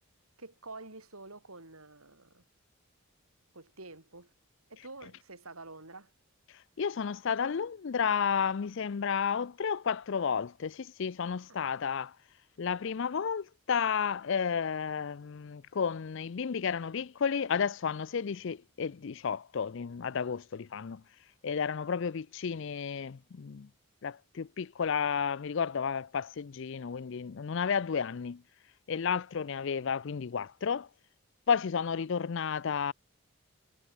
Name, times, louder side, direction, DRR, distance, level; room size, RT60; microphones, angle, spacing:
voice 1, 0.4-2.4 3.5-4.3 4.7-6.1 11.5-11.6, right 3 dB, 80° right, 7.2 m, -48 dB
voice 2, 6.8-12.1 12.6-21.0 21.4-23.7 24.0-28.4 28.9-30.9 31.5-32.9, left 6 dB, 60° left, 0.4 m, -32 dB
head